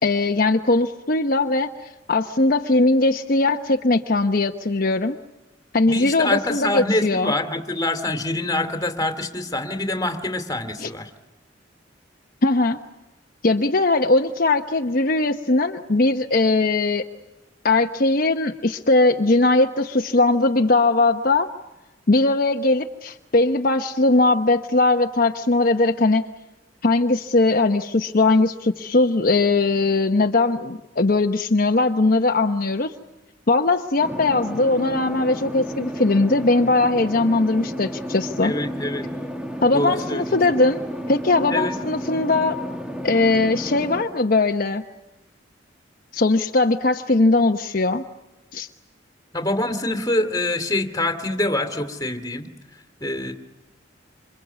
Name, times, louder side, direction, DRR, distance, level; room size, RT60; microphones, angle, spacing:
voice 1, 0.0-5.2 5.7-7.3 10.8-10.9 12.4-12.8 13.4-17.0 17.6-21.5 22.1-26.2 26.8-32.9 33.5-38.5 39.6-40.8 41.1-42.6 43.0-44.8 46.1-48.0 48.5-48.7, left 2 dB, 50° left, 4 dB, 1.0 m, -20 dB
voice 2, 5.9-11.1 38.4-39.1 39.7-40.4 41.5-41.8 49.3-52.5 53.0-53.3, left 1 dB, 20° left, 7 dB, 2.5 m, -25 dB
sound 1, 34.0-44.0, equal, 5° right, 1.9 m, -32 dB
27.5 x 26.5 x 8.3 m, 1.1 s
head